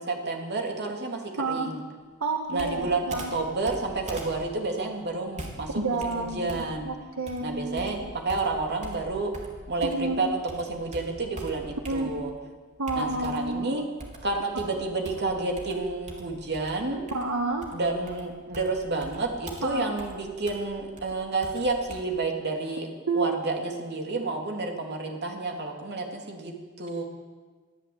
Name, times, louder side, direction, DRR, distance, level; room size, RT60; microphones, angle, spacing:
voice 1, 0.0-1.8 2.5-6.9 7.4-9.3 9.7-12.3 12.9-13.9 14.2-17.0 17.7-22.9 23.1-27.0, right 3 dB, 50° right, 2 dB, 3.2 m, -30 dB
voice 2, 1.4-1.8 2.2-3.3 5.7-8.1 9.8-10.2 11.9-12.1 12.8-13.8 17.1-17.7 19.6-19.9 23.1-23.3, right 3 dB, 75° right, 2 dB, 1.8 m, -30 dB
Computer keyboard, 2.6-10.2 10.5-12.4 12.9-13.6 14.0-22.0, right 1 dB, 35° right, 3.7 m, -43 dB
23.5 x 14.0 x 8.9 m, 1.4 s
head